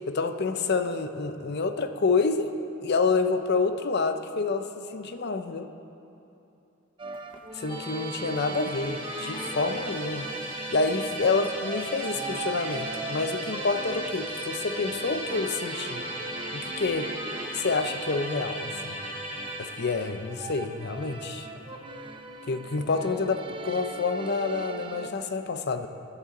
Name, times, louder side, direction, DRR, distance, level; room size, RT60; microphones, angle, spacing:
voice 1, 0.1-2.5 2.8-5.7 7.5-10.3 10.7-16.0 16.5-17.1 17.5-19.0 19.6-21.5 22.5-25.9, left 4 dB, 55° left, 9 dB, 0.6 m, -28 dB
sound 1, 7.0-25.1, right 2 dB, 25° right, 0.7 m, -39 dB
Musical instrument, 7.7-22.9, right 1 dB, 25° left, 2.1 m, -38 dB
16.0 x 11.5 x 3.8 m, 2.8 s
head